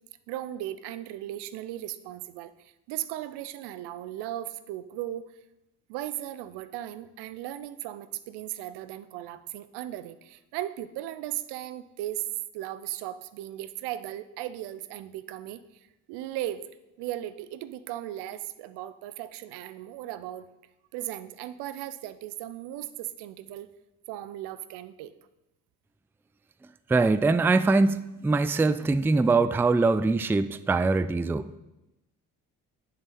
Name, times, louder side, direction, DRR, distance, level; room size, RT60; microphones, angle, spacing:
voice 1, 0.3-5.3 5.9-12.3 12.5-15.6 16.1-16.6 17.0-20.5 20.9-23.7 24.1-25.1, right 13 dB, 70° right, 14 dB, 0.7 m, -37 dB
voice 2, 26.9-31.6, right 3 dB, 5° right, 14 dB, 0.4 m, -23 dB
10.5 x 6.7 x 4.3 m, 0.95 s
hypercardioid pair, 50°, 41 cm